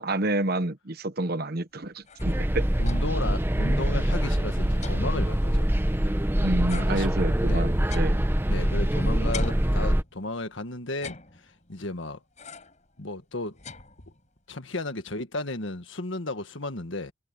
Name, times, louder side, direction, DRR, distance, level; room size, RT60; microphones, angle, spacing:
voice 1, 0.0-2.7 6.4-8.2, right 2 dB, 50° right, 1.1 m, -29 dB
sound 1, 1.8-3.3 3.6-3.7 4.0-6.2 6.7-8.9 9.3-10.4 10.9-11.8 12.4-12.9 13.2-14.4, left 4 dB, 35° left, 7.9 m, -44 dB
sound 2, 2.2-10.0, equal, 10° right, 0.8 m, -24 dB
voice 2, 2.8-5.7 6.8-7.1 7.4-7.7 8.5-12.2 13.0-13.6 14.5-17.1, left 2 dB, 70° left, 1.7 m, -34 dB
head